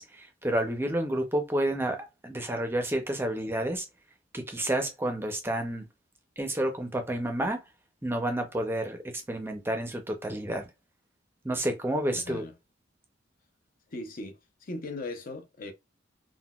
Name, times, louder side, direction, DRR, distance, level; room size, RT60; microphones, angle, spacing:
voice 1, 0.0-3.9 4.3-5.9 6.4-7.6 8.0-10.7 11.4-12.4, right 1 dB, 10° right, 0.5 m, -30 dB
voice 2, 12.1-12.5 13.9-15.7, left 2 dB, 45° left, 0.5 m, -39 dB
3.7 x 2.2 x 2.3 m
head